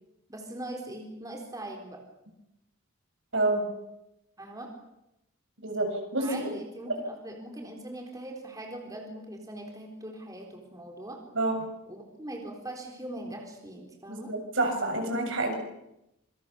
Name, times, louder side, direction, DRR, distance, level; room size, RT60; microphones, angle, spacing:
voice 1, 0.3-2.0 4.4-4.7 6.2-11.2 11.9-14.3, right 1 dB, 15° right, 1 dB, 4.0 m, -41 dB
voice 2, 3.3-3.6 5.6-6.5 6.9-7.0 11.3-11.6 14.1-15.5, right 2 dB, 60° right, 3 dB, 6.9 m, -28 dB
27.5 x 25.5 x 7.1 m, 0.87 s
head